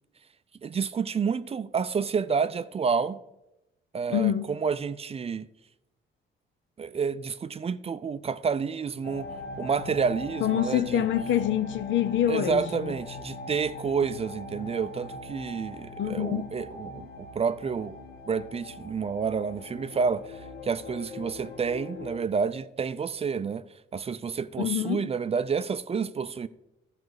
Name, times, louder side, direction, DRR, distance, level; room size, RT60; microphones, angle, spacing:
voice 1, 0.6-3.2 3.9-5.5 6.8-9.3 9.6-11.0 12.3-18.0 18.3-23.6 23.9-26.5, right 6 dB, 30° right, 0.4 m, -29 dB
voice 2, 4.1-4.5 10.4-12.9 16.0-16.5 24.6-25.1, left 11 dB, 70° left, 0.6 m, -26 dB
sound 1, 9.0-22.2, left 2 dB, 55° left, 1.2 m, -41 dB
12.0 x 5.2 x 4.8 m
cardioid pair, 90°, 20 cm